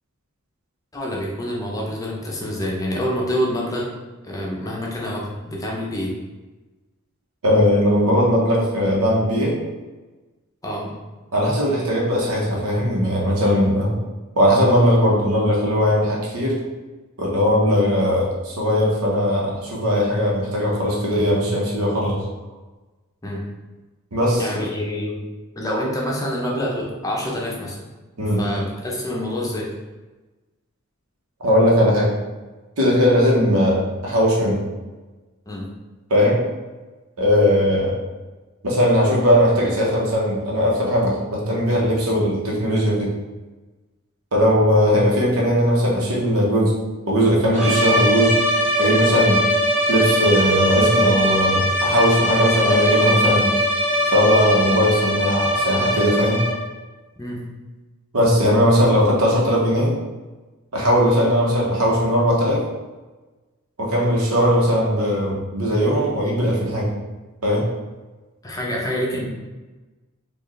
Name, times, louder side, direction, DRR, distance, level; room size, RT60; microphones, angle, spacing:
voice 1, 0.9-3.9 4.2-6.1 10.6-10.9 23.2-23.4 24.4-25.2 25.6-27.8 28.4-29.7 35.5-35.7 57.2-57.4 68.4-69.3, equal, 15° left, -3 dB, 0.6 m, -26 dB
voice 2, 7.4-9.6 11.3-13.9 14.3-16.6 17.2-22.2 24.1-24.6 28.2-28.4 31.4-32.1 32.8-34.6 36.1-36.4 37.2-38.0 38.6-43.1 44.3-46.7 47.1-48.4 48.8-49.4 49.9-53.5 54.1-56.4 58.1-59.9 60.7-62.6 63.8-66.9 67.4-67.6, equal, 85° right, -3 dB, 1.0 m, -19 dB
sound 1, 47.5-56.7, equal, 30° right, 1.1 m, -20 dB
4.4 x 2.4 x 3.2 m, 1.2 s
head